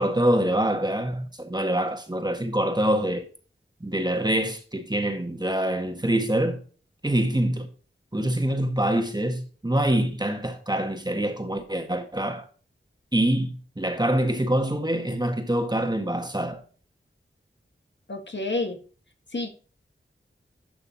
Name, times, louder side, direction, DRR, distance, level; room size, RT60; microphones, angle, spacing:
voice 1, 0.0-3.3 3.8-6.6 7.0-7.7 8.1-12.5 13.1-16.6, right 1 dB, 20° right, 1.6 m, -25 dB
voice 2, 18.1-18.8 19.3-19.5, left 2 dB, 60° left, 1.6 m, -29 dB
11.0 x 5.8 x 2.9 m
wide cardioid pair, 50°, 21 cm